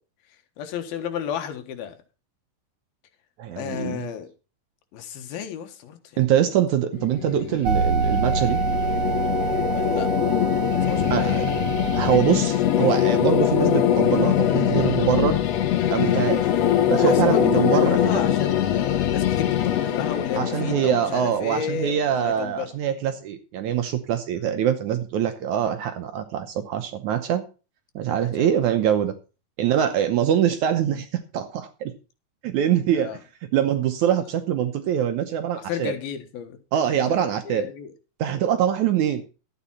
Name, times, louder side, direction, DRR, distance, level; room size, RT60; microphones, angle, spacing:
voice 1, 0.6-2.0 3.6-4.3 4.9-6.2 9.7-10.1 10.8-11.5 17.0-22.7 28.1-28.5 29.8-29.9 32.9-33.2 35.6-36.6 36.8-37.2 37.4-37.9 38.3-38.4, left 8 dB, 90° left, 7 dB, 3.3 m, -33 dB
voice 2, 3.4-4.1 6.2-8.6 11.1-11.4 11.9-15.4 15.9-16.5 16.9-18.3 20.4-27.4 28.0-29.1 29.6-31.1 31.3-31.9 32.4-33.2 33.5-35.9 36.7-37.7 38.2-39.2, right 9 dB, 70° right, 8 dB, 1.9 m, -23 dB
sound 1, 6.9-22.0, left 11 dB, 65° left, 1.8 m, -23 dB
sound 2, 7.6-12.2, right 5 dB, 45° right, 2.2 m, -25 dB
12.5 x 9.2 x 4.2 m, 0.33 s
omnidirectional pair, 4.2 m